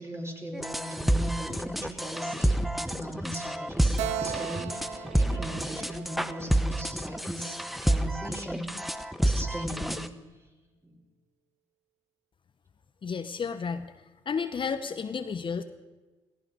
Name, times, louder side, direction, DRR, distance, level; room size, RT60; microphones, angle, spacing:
voice 1, 0.0-7.6 7.8-10.2 10.8-10.9, equal, 25° right, 0 dB, 5.2 m, -39 dB
sound 1, 0.5-10.1, right 1 dB, ahead, 0.9 m, -29 dB
Keyboard (musical), 4.0-7.4, right 11 dB, 85° right, 0.5 m, -38 dB
voice 2, 13.0-13.9 14.3-15.6, left 6 dB, 50° left, 9 dB, 0.9 m, -32 dB
16.5 x 15.5 x 5.3 m, 1.2 s
supercardioid pair, 60°, 11 cm